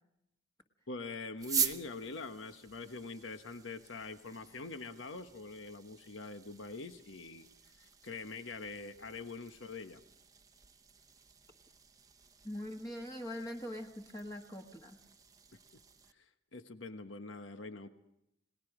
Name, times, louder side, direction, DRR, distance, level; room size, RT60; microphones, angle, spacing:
voice 1, 0.9-10.0 16.1-17.9, left 3 dB, 80° left, 8 dB, 1.3 m, -44 dB
sound 1, 1.4-16.1, right 7 dB, 20° right, 0.8 m, -44 dB
voice 2, 12.4-15.0, equal, 20° left, 1 dB, 1.6 m, -42 dB
30.0 x 19.0 x 5.0 m, 0.81 s
head